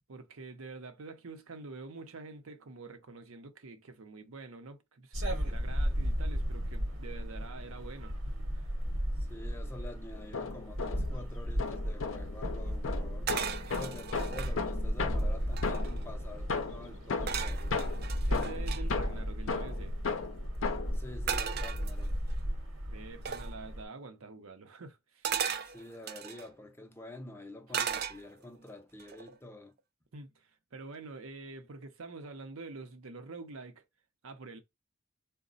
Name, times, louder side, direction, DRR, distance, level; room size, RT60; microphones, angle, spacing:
voice 1, 0.1-8.5 14.0-14.2 18.3-20.0 22.9-25.3 30.1-33.8 34.2-34.6, right 3 dB, 80° right, 0.7 m, -47 dB
sound 1, 5.1-23.8, equal, 60° right, 1.1 m, -35 dB
voice 2, 9.1-13.3 13.8-17.7 20.9-22.2 25.7-29.7, left 1 dB, 10° left, 0.5 m, -47 dB
sound 2, 10.1-11.2 11.6-16.1 16.5-21.0, left 4 dB, 65° left, 0.5 m, -36 dB
sound 3, 13.3-14.6 15.1-15.2 15.4-16.1 17.3-18.8 21.3-22.3 23.3-23.5 25.2-26.5 27.7-28.6 29.0-29.3, right 7 dB, 45° right, 0.3 m, -36 dB
4.0 x 2.1 x 3.9 m
head